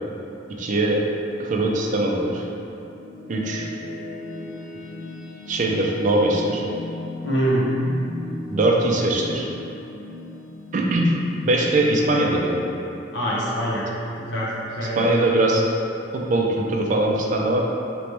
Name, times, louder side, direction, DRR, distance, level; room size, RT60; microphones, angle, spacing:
voice 1, 0.6-1.0 1.4-2.4 3.3-3.7 5.5-6.6 8.4-9.5 10.7-11.1 11.4-12.6 15.0-15.6 16.1-17.6, right 1 dB, 45° right, -1 dB, 0.4 m, -21 dB
sound 1, 2.7-13.7, left 2 dB, 45° left, 0.5 m, -38 dB
voice 2, 7.2-7.6 13.1-13.9 14.2-15.1, right 1 dB, 80° left, -6 dB, 0.8 m, -24 dB
3.2 x 3.0 x 3.0 m, 2.8 s
head